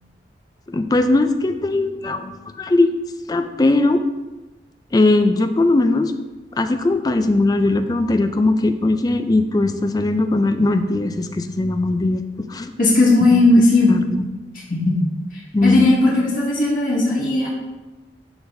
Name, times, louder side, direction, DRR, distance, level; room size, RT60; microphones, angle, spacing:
voice 1, 0.7-2.3 2.6-2.9 3.3-4.0 4.9-6.1 6.5-12.2 12.5-12.7 13.2-14.3 15.5-16.1, left 2 dB, 20° left, 8 dB, 0.3 m, -19 dB
voice 2, 12.8-13.9 14.7-15.0 15.6-17.5, left 2 dB, 50° left, -5 dB, 1.9 m, -16 dB
11.5 x 4.0 x 2.6 m, 1.2 s
head